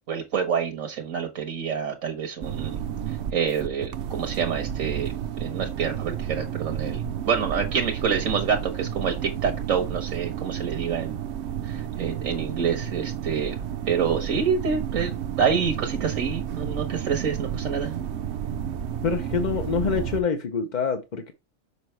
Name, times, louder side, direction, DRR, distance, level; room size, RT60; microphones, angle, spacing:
voice 1, 0.1-2.8 3.3-5.1 5.4-11.2 11.7-13.6 13.9-15.1 15.4-17.9, right 6 dB, 80° right, 1.6 m, -27 dB
sound 1, 2.4-20.2, right 9 dB, 65° right, 0.9 m, -31 dB
voice 2, 19.0-21.3, left 5 dB, 40° left, 0.8 m, -26 dB
6.9 x 5.0 x 3.2 m
omnidirectional pair, 1.3 m